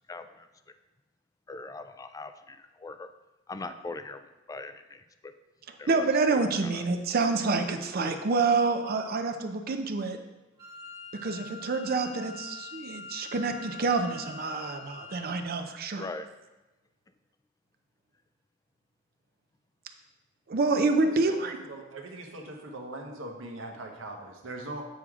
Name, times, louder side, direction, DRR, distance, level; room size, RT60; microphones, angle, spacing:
voice 1, 0.1-0.5 1.5-3.1 3.5-5.3 5.8-6.1 6.3-6.8 16.0-16.3, left 3 dB, 20° left, 10 dB, 0.3 m, -41 dB
voice 2, 5.9-10.2 11.2-16.0 20.5-21.6, right 3 dB, 50° right, 6 dB, 0.6 m, -27 dB
Wind instrument woodwind instrument, 10.6-15.4, left 4 dB, 20° right, 1.3 m, -45 dB
voice 3, 21.7-24.8, right 2 dB, 80° right, 2 dB, 1.0 m, -40 dB
8.4 x 4.9 x 3.6 m, 1.1 s
head